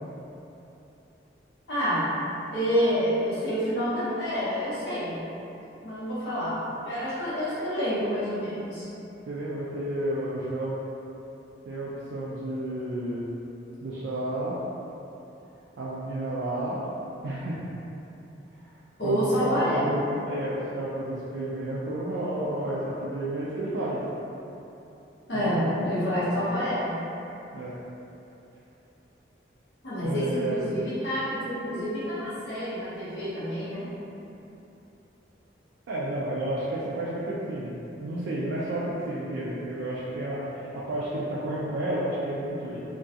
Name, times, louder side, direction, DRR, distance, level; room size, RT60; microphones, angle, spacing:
voice 1, 1.7-2.1 2.5-5.2 5.8-8.8 19.0-20.0 25.3-27.0 29.8-33.9, equal, 65° left, -12 dB, 0.7 m, -28 dB
voice 2, 9.0-10.8 11.6-13.2 13.8-14.6 15.8-16.8 17.2-17.6 18.6-18.7 19.0-24.0 25.3-25.8 26.2-26.3 27.5-27.8 30.0-30.8 35.9-37.8 38.0-42.8, right 1 dB, 75° right, -7 dB, 0.3 m, -31 dB
2.4 x 2.2 x 2.7 m, 2.9 s
head